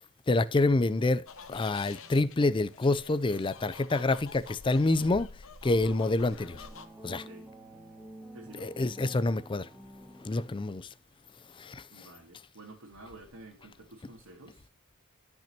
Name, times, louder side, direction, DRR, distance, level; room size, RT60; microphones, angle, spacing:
voice 1, 0.3-5.3 5.6-6.6 7.0-7.2 8.6-9.7 10.2-10.9 11.6-12.1, left 2 dB, 20° left, 0.4 m, -27 dB
sound 1, 1.3-6.9, left 4 dB, 65° left, 1.0 m, -47 dB
sound 2, 6.4-11.0, right 1 dB, ahead, 2.1 m, -50 dB
voice 2, 7.1-7.5 8.3-8.8 11.9-14.7, right 2 dB, 70° right, 2.2 m, -51 dB
13.0 x 6.0 x 2.8 m
head